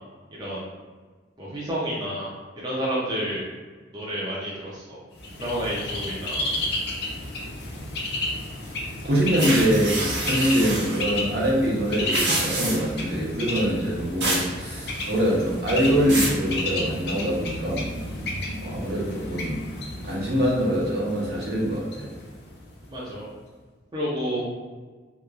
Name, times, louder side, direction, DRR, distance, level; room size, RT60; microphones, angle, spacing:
voice 1, 1.4-2.3 2.6-3.4 3.9-5.0 5.4-6.4 22.9-23.3 23.9-24.4, equal, 25° right, -6 dB, 0.4 m, -30 dB
Bird, 5.2-22.9, left 1 dB, 65° left, 0.5 m, -32 dB
voice 2, 9.0-17.9 18.6-19.6 20.0-22.1, equal, 60° right, -5 dB, 0.8 m, -24 dB
sound 1, 9.4-11.0 11.9-13.0 14.2-14.5 14.8-15.3 15.8-16.4, right 2 dB, 85° right, 1.2 m, -27 dB
2.9 x 2.2 x 2.3 m, 1.4 s
head